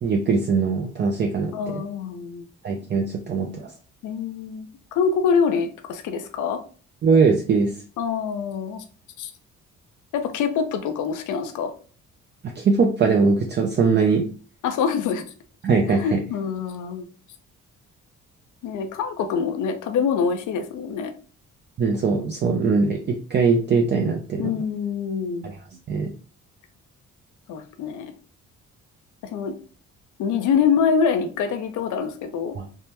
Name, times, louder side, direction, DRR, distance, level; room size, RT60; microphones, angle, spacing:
voice 1, 0.0-1.8 2.6-3.7 7.0-7.7 12.4-14.3 15.6-16.2 21.8-24.6 25.4-25.6 25.9-26.1 32.5-32.7, right 4 dB, 35° right, 2 dB, 0.5 m, -21 dB
voice 2, 1.5-2.5 4.0-4.7 4.9-6.6 8.0-8.8 9.2-9.3 10.1-11.7 14.6-15.3 15.9-17.1 18.6-21.1 24.4-25.5 27.5-28.1 29.3-29.5 30.2-32.6, left 6 dB, 80° left, 7 dB, 0.6 m, -25 dB
3.5 x 2.1 x 2.8 m, 0.40 s
cardioid pair, 90°, 30 cm